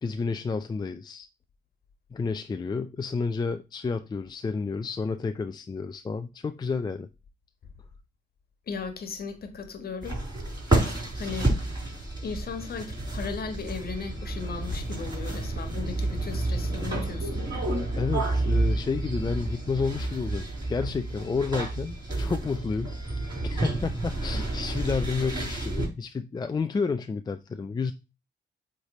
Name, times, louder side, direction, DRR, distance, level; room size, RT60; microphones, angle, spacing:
voice 1, 0.0-1.3 2.1-7.1 18.0-23.0 23.4-27.9, left 4 dB, 20° left, 0.4 m, -30 dB
voice 2, 8.7-10.2 10.5-10.6 11.1-11.5 12.2-17.5, left 5 dB, 50° left, 1.4 m, -36 dB
sound 1, 10.0-25.9, right 2 dB, 20° right, 4.5 m, -30 dB
7.9 x 3.4 x 4.2 m
cardioid pair, 90°, 20 cm